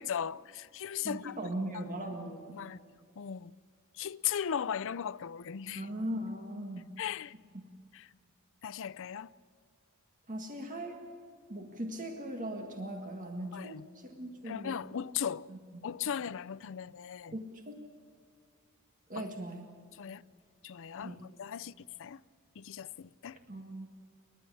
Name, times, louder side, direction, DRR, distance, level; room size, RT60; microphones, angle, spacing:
voice 1, 0.0-1.8 2.5-2.8 3.2-3.5 3.9-5.9 7.0-7.3 7.9-8.1 8.6-9.3 13.5-13.9 14.4-15.5 15.8-17.4 19.2-19.3 19.9-20.2 20.6-22.2 22.6-23.4, left 8 dB, 60° left, 0.5 m, -38 dB
voice 2, 1.0-2.6 5.8-6.9 10.3-11.0 11.5-14.8 15.5-15.6 17.3-17.8 19.1-19.7 21.0-21.2 23.5-23.9, right 1 dB, 40° right, 1.9 m, -39 dB
29.5 x 12.5 x 8.6 m
head